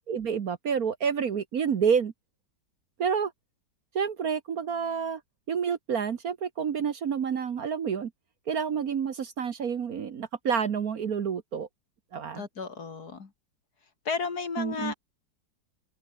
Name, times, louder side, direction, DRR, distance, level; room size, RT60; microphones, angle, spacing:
voice 1, 0.1-2.1 3.0-3.3 3.9-5.2 5.5-8.1 8.5-11.7 12.1-12.4 14.6-14.9, right 7 dB, 55° right, 1.5 m, -29 dB
voice 2, 12.4-13.3 14.0-14.9, left 5 dB, 55° left, 2.8 m, -33 dB
open air
omnidirectional pair, 2.1 m